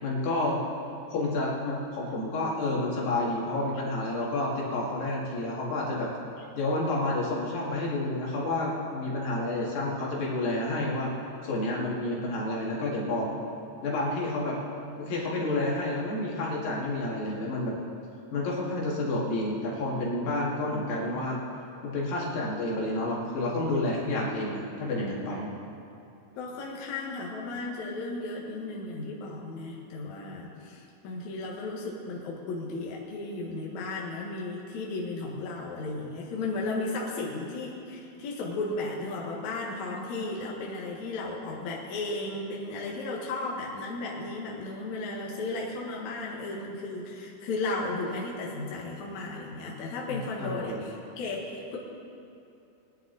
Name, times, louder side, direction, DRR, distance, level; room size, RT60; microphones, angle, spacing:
voice 1, 0.0-0.6 1.1-6.1 6.5-11.2 11.4-13.3 13.8-14.6 15.0-17.7 18.3-21.4 21.8-25.5 50.4-50.9, left 2 dB, 85° left, -4 dB, 4.0 m, -29 dB
voice 2, 26.3-51.8, left 2 dB, 60° left, -3 dB, 2.7 m, -35 dB
21.5 x 10.0 x 4.0 m, 2.7 s
omnidirectional pair, 4.0 m